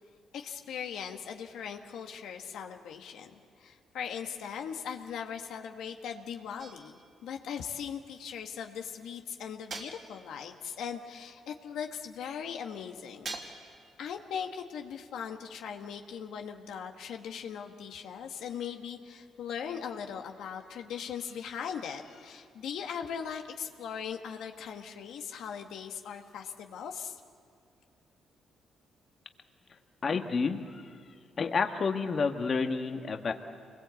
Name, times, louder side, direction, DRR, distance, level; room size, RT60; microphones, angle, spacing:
voice 1, 0.3-13.4 14.0-27.2, left 7 dB, 80° left, 4 dB, 1.4 m, -39 dB
sound 1, 6.6-7.2 9.7-10.5 13.2-13.9, right 3 dB, 45° right, 3.3 m, -43 dB
voice 2, 30.0-30.9 31.4-33.3, left 5 dB, 45° left, 5 dB, 1.5 m, -30 dB
27.5 x 21.0 x 8.3 m, 2.4 s
cardioid pair, 90°, 0 cm